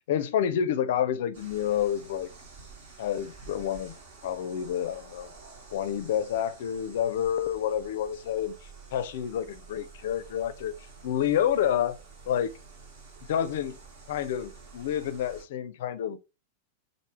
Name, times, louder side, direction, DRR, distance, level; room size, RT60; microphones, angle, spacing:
voice 1, 0.1-2.3 3.0-4.0 4.2-5.3 5.7-8.5 8.9-10.7 11.0-12.0 12.3-12.5 13.3-13.8 14.1-16.2, left 9 dB, 55° left, 0.5 m, -28 dB
sound 1, 1.3-15.4, right 4 dB, 55° right, 1.2 m, -50 dB
4.6 x 2.6 x 3.0 m
figure-of-eight pair, 90°, 0 cm